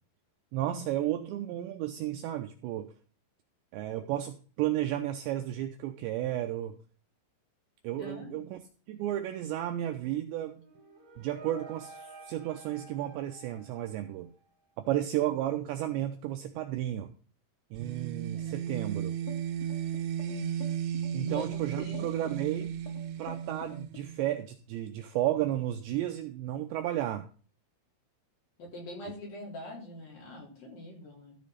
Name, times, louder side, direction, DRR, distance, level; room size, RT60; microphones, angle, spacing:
voice 1, 0.5-2.9 3.7-6.8 7.8-8.6 8.9-10.6 11.2-14.3 14.8-17.1 17.7-19.2 21.1-22.8 23.2-27.3, right 13 dB, 90° right, 6 dB, 2.5 m, -33 dB
voice 2, 8.0-8.5 18.3-18.5 21.2-22.1 28.6-31.4, left 2 dB, 45° left, -2 dB, 4.6 m, -44 dB
sound 1, 10.5-14.5, right 3 dB, 40° right, 1.8 m, -51 dB
sound 2, 17.7-24.4, right 9 dB, 75° right, 3.1 m, -35 dB
sound 3, 19.3-24.5, left 6 dB, 80° left, 4.3 m, -48 dB
13.5 x 5.2 x 5.6 m, 0.40 s
omnidirectional pair, 6.0 m